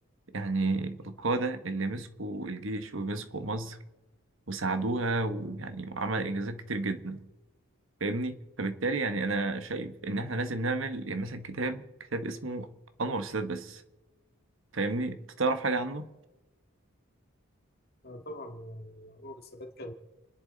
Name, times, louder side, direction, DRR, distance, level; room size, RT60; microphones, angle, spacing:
voice 1, 0.3-3.8 4.5-7.2 8.0-11.8 12.1-12.7 13.0-13.8 14.7-16.1, right 2 dB, 65° right, 9 dB, 1.3 m, -31 dB
voice 2, 18.0-19.9, left 1 dB, 45° left, 5 dB, 1.9 m, -43 dB
29.5 x 11.0 x 4.0 m, 1.1 s
head